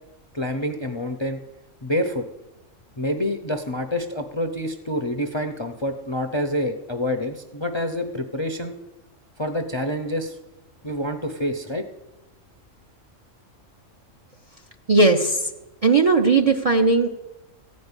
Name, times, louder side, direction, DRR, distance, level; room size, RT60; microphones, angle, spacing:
voice 1, 0.3-1.4 1.8-2.2 3.0-8.7 9.4-10.4 10.8-11.8, left 1 dB, 30° left, 6 dB, 0.6 m, -27 dB
voice 2, 14.9-15.4 15.8-17.1, right 3 dB, 35° right, 5 dB, 0.7 m, -17 dB
15.0 x 5.3 x 9.7 m, 1.0 s
omnidirectional pair, 1.4 m